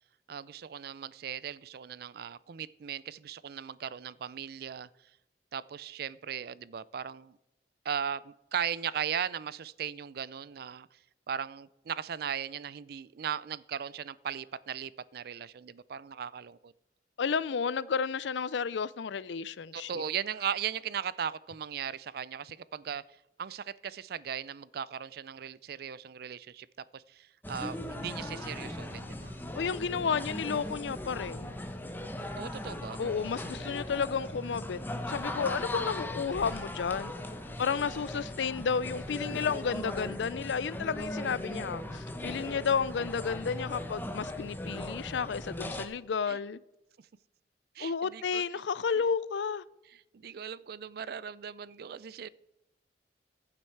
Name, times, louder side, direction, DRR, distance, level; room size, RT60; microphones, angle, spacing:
voice 1, 0.3-4.9 5.5-7.4 7.8-10.9 11.3-16.7 19.7-23.0 23.4-29.3 32.3-33.0 46.3-46.4 47.8-48.4 50.1-52.3, right 8 dB, 55° right, 0.4 m, -38 dB
voice 2, 17.2-20.0 29.5-31.5 33.0-34.8 35.1-37.1 37.6-46.6 47.8-49.6, left 6 dB, 80° left, 0.4 m, -32 dB
sound 1, 27.4-45.9, left 1 dB, 10° left, 0.9 m, -38 dB
14.5 x 7.6 x 4.6 m
head